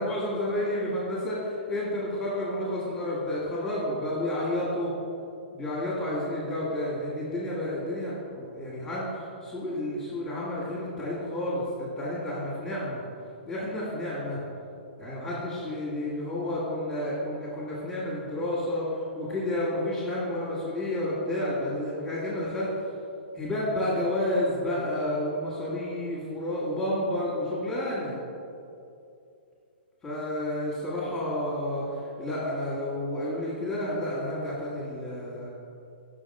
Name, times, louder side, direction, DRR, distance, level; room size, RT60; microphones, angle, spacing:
voice 1, 0.0-4.9 5.5-13.0 13.5-14.4 15.0-22.7 23.3-28.1 30.0-35.5, left 1 dB, 10° left, -9 dB, 1.5 m, -30 dB
6.0 x 3.5 x 5.3 m, 2.6 s
hypercardioid pair, 135°, 6 cm